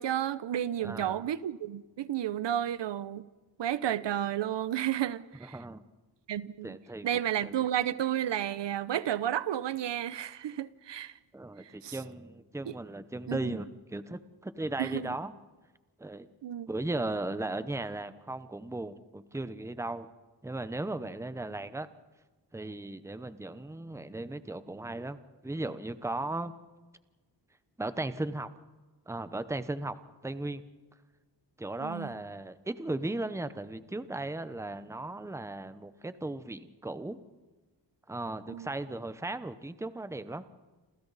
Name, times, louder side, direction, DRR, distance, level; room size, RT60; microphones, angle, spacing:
voice 1, 0.0-3.3 3.6-5.6 6.3-6.8 7.0-11.1 11.6-12.0 12.6-12.7 13.3-13.6 14.8-15.2 16.4-16.7 31.8-32.1 38.5-38.7, right 11 dB, 80° right, 0.8 m, -32 dB
voice 2, 0.8-1.2 5.4-5.8 6.6-7.1 7.4-7.5 11.3-15.3 16.0-16.3 16.7-20.1 20.4-21.9 22.5-25.2 25.4-26.5 27.8-28.5 29.1-30.0 30.2-30.6 31.6-37.2 38.1-40.4, right 2 dB, 5° right, 0.8 m, -36 dB
29.0 x 27.5 x 4.1 m
wide cardioid pair, 145°, 42 cm